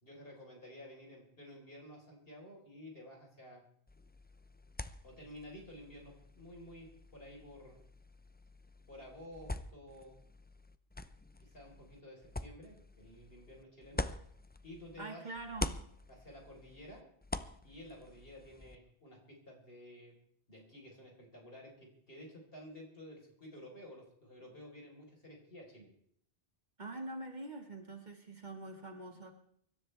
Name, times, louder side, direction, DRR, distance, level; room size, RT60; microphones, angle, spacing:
voice 1, 0.0-3.6 5.0-7.8 8.9-10.2 11.4-14.0 14.6-15.2 16.1-17.0 17.6-20.1 20.5-25.9, equal, 60° left, -1 dB, 4.7 m, -52 dB
sound 1, 3.9-15.1 15.4-18.8, left 2 dB, 15° left, 0.4 m, -45 dB
voice 2, 15.0-15.8 26.8-29.3, right 2 dB, 45° right, 3 dB, 2.1 m, -44 dB
24.5 x 13.5 x 3.4 m, 0.65 s
omnidirectional pair, 1.1 m